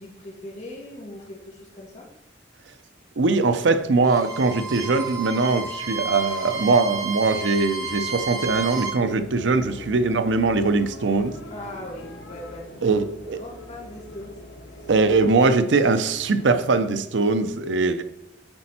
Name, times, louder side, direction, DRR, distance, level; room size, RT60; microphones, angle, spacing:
voice 1, 0.0-2.1 11.5-12.9 13.3-14.4 14.6-14.9, left 1 dB, 40° left, -3 dB, 2.1 m, -40 dB
voice 2, 3.2-11.4 12.8-13.4 14.9-18.0, right 3 dB, 90° right, 10 dB, 0.6 m, -21 dB
Bowed string instrument, 4.0-9.0, right 3 dB, 20° right, 1.0 m, -31 dB
sound 1, 7.7-17.0, left 1 dB, 75° left, 0.9 m, -43 dB
8.9 x 4.3 x 4.3 m, 0.82 s
head